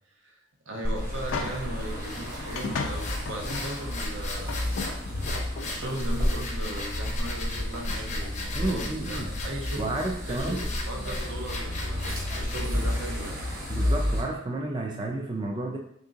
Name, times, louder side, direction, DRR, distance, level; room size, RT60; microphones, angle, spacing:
sound 1, 0.7-1.9 2.4-3.7 4.0-4.1 4.5-5.7, left 3 dB, 90° left, 0.5 m, -35 dB
voice 1, 0.7-4.7 5.6-9.9 10.3-13.4, right 1 dB, 85° right, 1 dB, 0.8 m, -37 dB
sound 2, 0.8-14.3, left 1 dB, 35° left, 0.5 m, -35 dB
sound 3, 1.0-14.2, left 1 dB, 45° right, 1.4 m, -33 dB
voice 2, 8.5-9.3 9.8-10.6 13.7-15.8, right 2 dB, 25° right, 1 dB, 0.3 m, -31 dB
3.5 x 2.7 x 3.7 m, 0.72 s
head